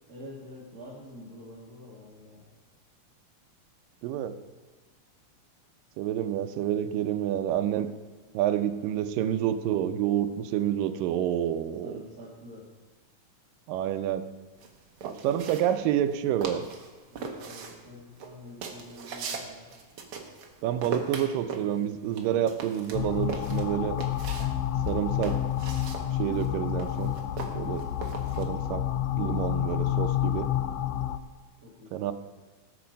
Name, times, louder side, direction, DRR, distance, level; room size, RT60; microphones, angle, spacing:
voice 1, 0.1-2.5 6.1-6.3 11.8-12.7 17.1-19.7 29.1-29.4 31.6-32.0, left 1 dB, 35° right, -6 dB, 1.9 m, -47 dB
voice 2, 4.0-4.3 6.0-7.9 8.3-11.9 13.7-14.2 15.0-16.7 20.6-24.0 24.9-25.4 26.2-27.1 27.6-27.9 28.4-28.9 29.2-30.5 31.9-32.1, right 10 dB, 85° right, 10 dB, 2.4 m, -28 dB
sound 1, 14.6-16.2 16.4-16.9 17.2-20.5 20.8-24.5 24.8-28.4, right 5 dB, 55° right, 1.6 m, -39 dB
sound 2, 22.9-31.2, left 12 dB, 90° left, 1.6 m, -29 dB
18.5 x 6.9 x 5.1 m, 1.3 s
omnidirectional pair, 3.9 m